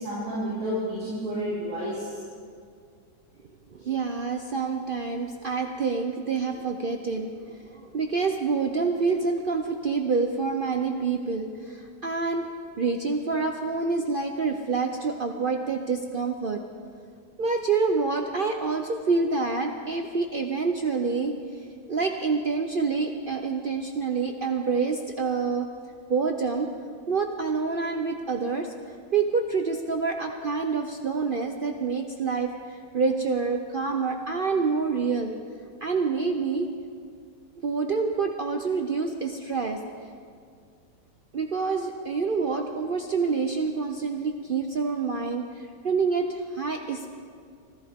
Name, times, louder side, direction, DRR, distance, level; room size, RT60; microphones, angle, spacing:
voice 1, 0.0-2.2, equal, 50° right, -11 dB, 5.5 m, -30 dB
voice 2, 3.7-12.5 12.8-16.6 17.4-21.4 21.9-25.7 26.1-26.7 27.1-28.7 29.1-35.3 35.8-36.7 37.6-39.8 41.3-47.1, right 4 dB, 85° right, 4 dB, 0.4 m, -27 dB
25.0 x 15.0 x 3.6 m, 2.1 s
omnidirectional pair, 2.0 m